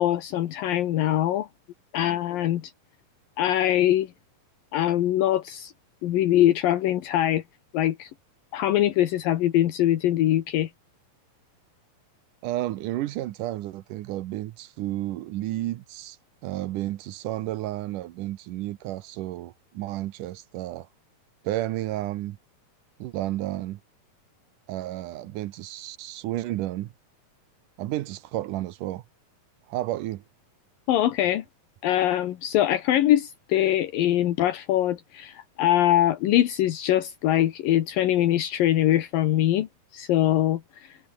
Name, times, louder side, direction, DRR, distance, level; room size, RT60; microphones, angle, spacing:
voice 1, 0.0-1.5 1.9-2.7 3.4-4.1 4.7-5.7 6.0-7.4 7.7-8.1 8.5-10.7 30.9-31.4 31.8-41.0, left 12 dB, 75° left, 3.0 m, -23 dB
voice 2, 12.4-16.2 16.4-20.9 21.4-22.4 23.0-23.8 24.7-26.9 27.8-29.0 29.7-30.2, right 15 dB, 75° right, 2.2 m, -31 dB
omnidirectional pair, 4.1 m